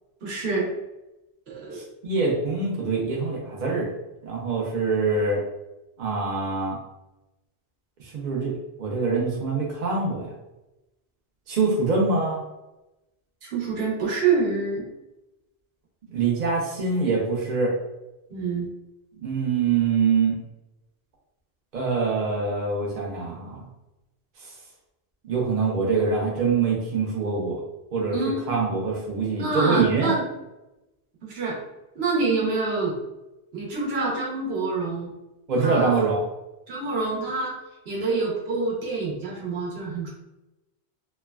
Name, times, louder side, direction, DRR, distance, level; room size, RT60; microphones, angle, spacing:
voice 1, 0.2-0.7 1.5-1.8 13.4-14.9 18.3-18.7 28.1-28.4 29.4-30.2 31.2-31.6 31.9-32.9 33.5-35.1 35.6-36.0 36.7-37.5 37.9-40.1, right 4 dB, 75° right, -4 dB, 1.1 m, -26 dB
voice 2, 1.7-3.9 4.3-5.4 6.0-6.8 8.1-8.5 8.8-10.3 11.5-12.4 16.1-17.7 19.2-20.3 21.7-23.6 25.2-27.6 27.9-28.1 28.5-30.1 35.5-36.2, right 4 dB, 50° right, -3 dB, 0.7 m, -24 dB
3.1 x 2.2 x 2.2 m, 0.97 s
omnidirectional pair, 1.1 m